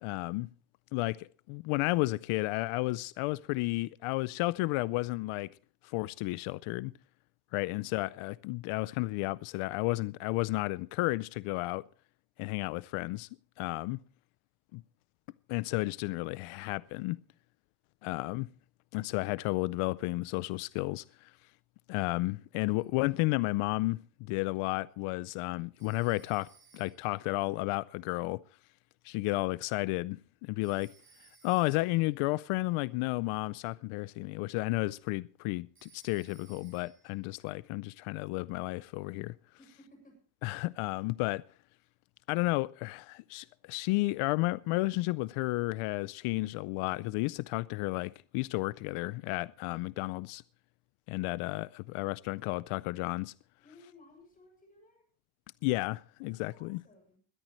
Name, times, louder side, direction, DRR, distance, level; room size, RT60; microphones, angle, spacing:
voice 1, 0.0-0.5 0.9-5.5 5.8-6.9 7.5-11.8 12.4-13.3 13.6-14.0 14.7-14.8 15.5-17.2 18.0-18.5 18.9-21.3 21.9-28.4 29.0-30.9 31.4-39.3 40.4-41.4 42.3-50.4 51.1-53.3 55.6-56.8, left 21 dB, 85° left, 0.6 m, -32 dB
Telephone, 25.8-27.2 30.6-32.0 35.8-37.2, right 6 dB, 25° right, 6.6 m, -62 dB
voice 2, 39.6-40.2 53.6-55.1 56.2-57.2, left 2 dB, 15° left, 7.0 m, -59 dB
21.0 x 13.0 x 3.1 m
cardioid pair, 160°, 50 cm